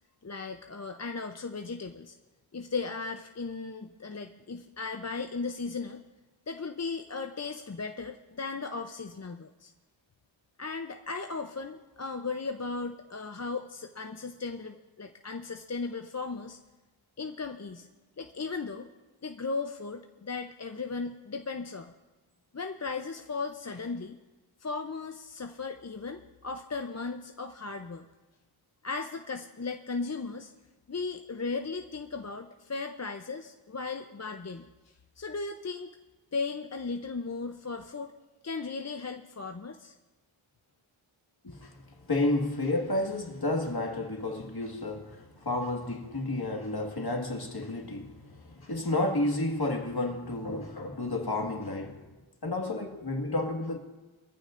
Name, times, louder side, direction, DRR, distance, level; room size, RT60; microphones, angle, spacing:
voice 1, 0.2-2.1 2.5-6.0 6.5-9.7 10.6-16.6 17.2-17.9 18.2-18.9 19.2-21.9 22.5-24.2 24.6-28.1 28.8-30.5 30.9-34.7 35.2-35.9 36.3-38.1 38.4-40.0, left 4 dB, 35° left, 0.6 m, -36 dB
voice 2, 41.4-41.8 42.1-52.0 52.4-53.8, left 2 dB, 50° left, 1.8 m, -31 dB
22.5 x 14.5 x 2.5 m
wide cardioid pair, 60°, 49 cm